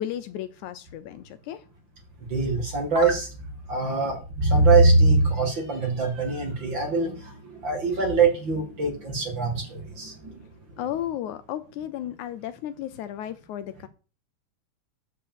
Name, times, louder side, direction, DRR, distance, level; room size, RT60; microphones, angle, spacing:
voice 1, 0.0-1.6 3.7-4.0 10.8-13.9, left 11 dB, 75° left, 2.0 m, -34 dB
voice 2, 2.3-3.4 3.7-10.5, right 3 dB, 40° right, 2.2 m, -23 dB
8.8 x 5.1 x 7.5 m
omnidirectional pair, 3.7 m